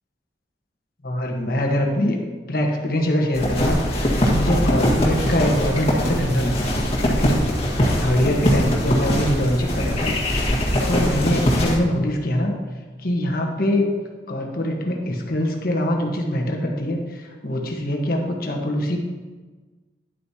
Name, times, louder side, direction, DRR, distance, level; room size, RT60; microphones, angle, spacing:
voice 1, 1.0-2.2 2.5-7.5 7.8-10.1 10.9-12.6 13.0-13.9 14.3-19.0, left 1 dB, 55° left, 1 dB, 1.3 m, -23 dB
sound 1, 3.3-11.8, equal, 35° left, 1.7 m, -21 dB
10.5 x 8.1 x 2.9 m, 1.3 s
head